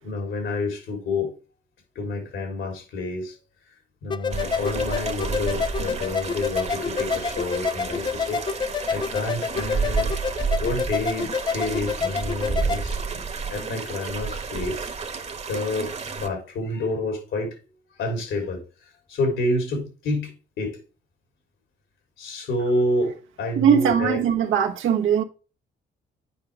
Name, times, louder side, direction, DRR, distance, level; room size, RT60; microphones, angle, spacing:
voice 1, 0.0-1.3 2.0-3.4 4.0-8.4 8.9-10.1 10.6-13.2 13.5-14.9 15.5-17.6 18.0-18.6 19.1-20.8 22.2-24.2, left 2 dB, 75° left, 3.5 m, -28 dB
sound 1, 4.1-12.8, left 6 dB, 25° left, 0.3 m, -28 dB
sound 2, 4.3-16.3, right 5 dB, 35° right, 1.2 m, -31 dB
voice 2, 23.5-25.2, right 8 dB, 85° right, 1.3 m, -20 dB
9.4 x 5.0 x 3.4 m
cardioid pair, 90°, 20 cm